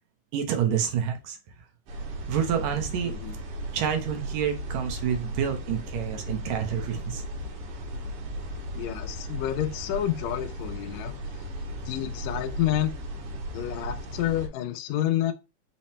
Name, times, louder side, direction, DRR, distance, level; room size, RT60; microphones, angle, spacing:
voice 1, 0.3-1.4 2.3-3.1 3.7-7.2, right 8 dB, 75° right, 1.9 m, -28 dB
sound 1, 1.9-14.5, right 1 dB, 90° right, 2.7 m, -36 dB
voice 2, 3.0-3.4 8.8-11.1 11.9-12.9 13.5-15.3, left 12 dB, 80° left, 1.7 m, -29 dB
5.7 x 2.1 x 4.2 m
omnidirectional pair, 3.5 m